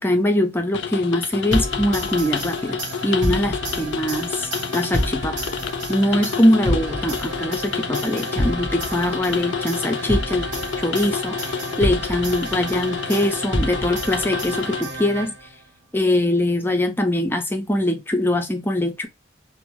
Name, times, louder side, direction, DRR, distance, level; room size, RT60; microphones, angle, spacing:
voice 1, 0.0-5.4 5.9-10.5 10.8-15.3 15.9-19.1, left 1 dB, 10° left, 0.4 m, -22 dB
sound 1, 0.7-14.8, left 7 dB, 85° left, 0.3 m, -29 dB
sound 2, 1.5-15.6, equal, 85° right, 1.0 m, -29 dB
2.6 x 2.0 x 2.9 m
head